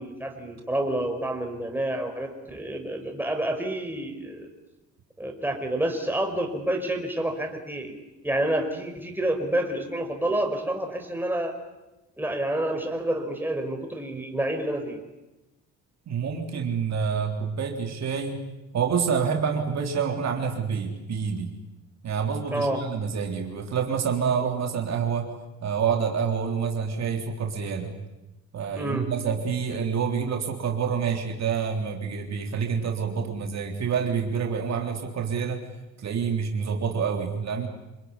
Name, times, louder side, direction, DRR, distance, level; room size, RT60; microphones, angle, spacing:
voice 1, 0.0-4.5 5.2-8.0 8.2-11.5 12.2-15.0 22.5-22.8 28.8-29.1, right 1 dB, 5° right, 3 dB, 5.4 m, -28 dB
voice 2, 16.1-18.4 18.7-21.5 22.0-25.3 25.6-28.0 28.5-35.6 36.0-37.7, right 6 dB, 60° right, 2 dB, 3.7 m, -27 dB
27.5 x 20.5 x 9.8 m, 1.0 s
cardioid pair, 90°, 30 cm